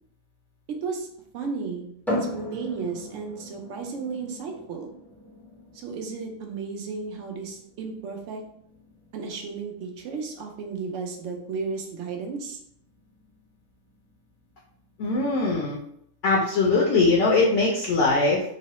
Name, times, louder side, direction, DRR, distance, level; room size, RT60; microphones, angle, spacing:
voice 1, 1.3-1.9 2.3-4.9 5.7-8.4 9.1-12.6, right 4 dB, 70° right, 3 dB, 0.9 m, -33 dB
sound 1, 2.1-15.6, equal, ahead, 0.4 m, -39 dB
voice 2, 15.0-15.8 16.2-18.4, left 3 dB, 70° left, -3 dB, 0.8 m, -21 dB
3.0 x 2.0 x 2.9 m, 0.71 s
omnidirectional pair, 1.4 m